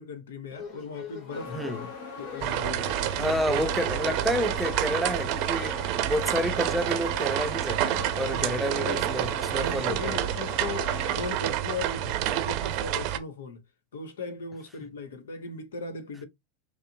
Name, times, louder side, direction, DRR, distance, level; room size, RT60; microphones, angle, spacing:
voice 1, 0.0-1.8 2.2-3.8 8.2-9.1 9.5-13.6 13.9-16.3, left 3 dB, 85° left, 0.9 m, -38 dB
sound 1, 0.5-7.8, left 6 dB, 40° left, 2.3 m, -45 dB
sound 2, 1.3-11.3, left 5 dB, 65° left, 1.2 m, -40 dB
voice 2, 1.5-1.8 3.2-10.2, equal, 5° right, 0.6 m, -30 dB
sound 3, 2.4-13.2, right 12 dB, 55° right, 0.6 m, -29 dB
5.2 x 2.1 x 2.7 m
hypercardioid pair, 105°, 0 cm